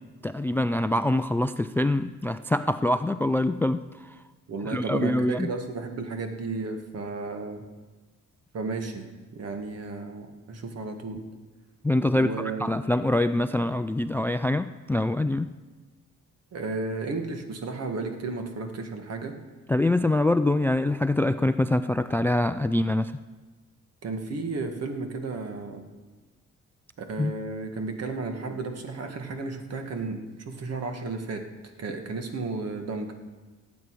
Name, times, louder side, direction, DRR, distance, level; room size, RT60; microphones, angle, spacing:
voice 1, 0.2-4.2 4.7-5.5 11.8-12.3 12.6-15.5 19.7-23.1 27.2-27.3, left 1 dB, 5° left, 12 dB, 0.3 m, -24 dB
voice 2, 4.5-7.6 8.5-11.2 12.1-12.8 16.5-19.3 24.0-25.8 27.1-30.2 30.5-31.4 31.8-33.1, right 3 dB, 55° right, 5 dB, 1.8 m, -33 dB
18.5 x 8.2 x 4.8 m, 1.3 s
cardioid pair, 90°, 30 cm